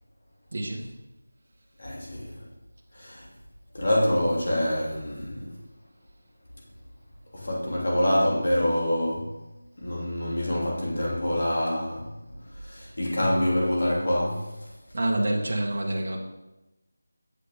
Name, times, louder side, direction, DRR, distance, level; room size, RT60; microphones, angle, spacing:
voice 1, 0.5-0.8 14.9-16.2, right 1 dB, 40° right, 1.2 m, -27 dB
voice 2, 1.8-2.3 2.9-3.2 3.7-5.6 7.3-9.4 9.8-12.1 12.7-14.5, left 1 dB, 50° left, 2.4 m, -26 dB
8.3 x 5.7 x 3.5 m
figure-of-eight pair, 175°, 0 cm